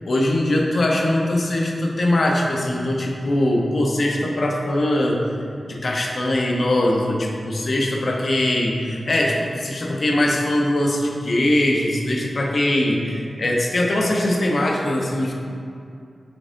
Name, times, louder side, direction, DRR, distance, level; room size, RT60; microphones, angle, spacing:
voice 1, 0.1-5.2 5.7-15.3, left 1 dB, 60° left, 0 dB, 0.5 m, -21 dB
5.2 x 3.5 x 2.5 m, 2.4 s
wide cardioid pair, 105°, 0 cm